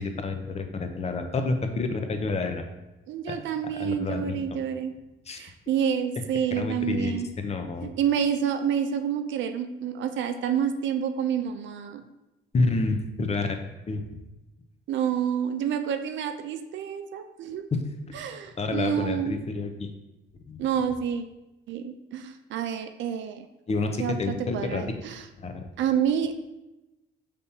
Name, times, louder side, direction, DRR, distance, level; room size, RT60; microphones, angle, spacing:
voice 1, 0.0-2.6 3.3-3.4 3.8-4.6 5.3-5.4 6.6-7.9 12.5-13.6 13.9-14.0 17.7-18.1 18.6-19.9 20.5-20.6 23.7-24.8 25.4-25.7, left 3 dB, 35° left, 6 dB, 0.6 m, -29 dB
voice 2, 3.1-4.9 5.4-7.3 8.0-12.0 14.9-17.6 18.1-19.3 20.6-21.2 21.7-23.5 24.0-24.2 24.5-25.2 25.8-26.3, right 8 dB, 70° right, 7 dB, 0.4 m, -28 dB
5.4 x 3.4 x 2.7 m, 1.0 s
cardioid pair, 90°, 20 cm